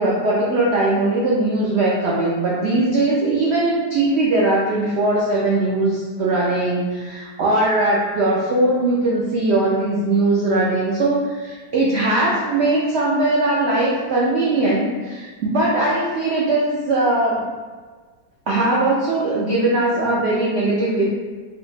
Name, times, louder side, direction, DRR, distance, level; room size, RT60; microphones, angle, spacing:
voice 1, 0.0-17.4 18.5-21.1, right 2 dB, 85° right, -5 dB, 0.5 m, -20 dB
2.8 x 2.2 x 3.8 m, 1.4 s
omnidirectional pair, 1.7 m